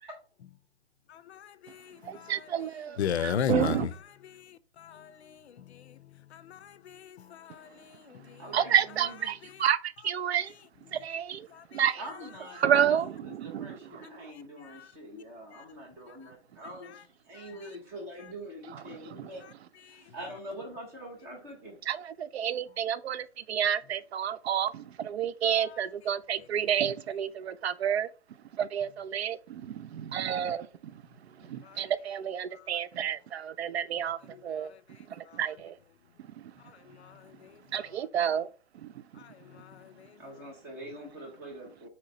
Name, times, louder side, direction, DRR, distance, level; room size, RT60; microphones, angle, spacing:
voice 1, 1.1-2.5 3.0-3.9 4.2-6.0 6.3-8.4 11.5-11.8 14.6-14.9 19.9-20.0 31.6-31.9 32.5-32.6 34.3-34.4 34.7-34.8 35.3-35.4 37.0-37.5 39.2-40.1, left 8 dB, 70° left, 0.6 m, -37 dB
voice 2, 2.0-3.9 8.5-10.5 10.9-11.5 11.7-12.0 12.6-13.7 14.2-14.3 19.2-19.3 21.9-28.1 28.6-30.7 31.5-34.7 35.1-35.8 37.7-38.5 38.8-38.9, right 9 dB, 65° right, 0.5 m, -30 dB
voice 3, 8.4-9.4 12.0-19.4 19.8-21.8 40.2-41.9, equal, 5° right, 0.4 m, -44 dB
4.3 x 2.9 x 3.8 m
hypercardioid pair, 145°, 34 cm